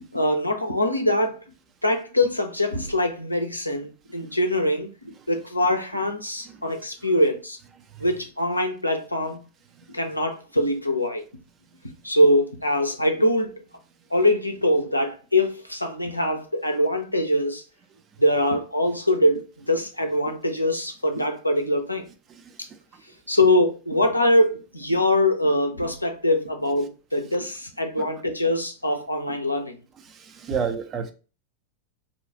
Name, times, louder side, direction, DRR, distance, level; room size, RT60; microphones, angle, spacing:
voice 1, 0.1-1.4 1.8-7.6 8.0-9.4 9.9-11.2 12.0-13.5 14.1-17.6 18.2-22.0 23.3-29.7 30.5-30.6, left 1 dB, 85° left, 0.5 m, -23 dB
voice 2, 30.4-31.1, right 6 dB, 30° right, 0.5 m, -28 dB
2.8 x 2.3 x 4.0 m
figure-of-eight pair, 90°, 0 cm